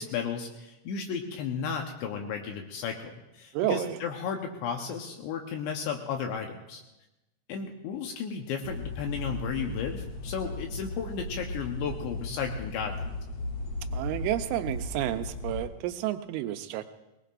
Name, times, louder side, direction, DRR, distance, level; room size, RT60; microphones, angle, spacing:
voice 1, 0.0-6.8 7.5-13.0, left 6 dB, 75° left, 2 dB, 2.9 m, -34 dB
voice 2, 3.5-4.0 13.9-16.9, right 14 dB, 85° right, 9 dB, 3.3 m, -30 dB
sound 1, 8.6-15.6, left 2 dB, 35° left, 3.4 m, -36 dB
22.0 x 19.5 x 2.5 m, 0.98 s
omnidirectional pair, 5.7 m